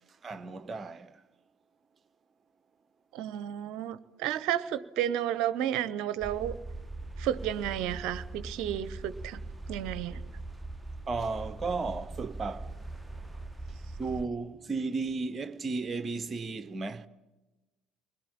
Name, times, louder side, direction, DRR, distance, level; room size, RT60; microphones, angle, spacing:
voice 1, 0.2-1.2 11.1-12.7 14.0-17.1, right 4 dB, 30° right, 1.1 m, -34 dB
voice 2, 3.1-6.5 7.2-9.4 9.7-10.2, right 11 dB, 55° right, 0.9 m, -32 dB
sound 1, 6.2-14.3, right 2 dB, 5° right, 1.3 m, -41 dB
30.0 x 21.0 x 8.8 m
figure-of-eight pair, 55°, 0 cm